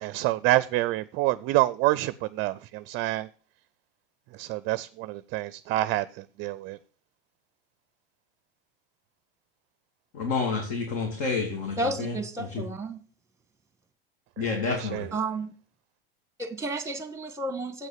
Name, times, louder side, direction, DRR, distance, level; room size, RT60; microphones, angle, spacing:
voice 1, 0.0-3.3 4.3-6.8 14.4-15.1, right 17 dB, 45° right, 0.5 m, -27 dB
voice 2, 10.1-12.1 12.5-12.6 14.4-15.1, left 4 dB, 60° left, 2.7 m, -29 dB
voice 3, 11.8-13.0 15.1-15.5 16.4-17.9, right 2 dB, 10° right, 1.4 m, -32 dB
7.9 x 6.3 x 7.4 m
hypercardioid pair, 100°, 29 cm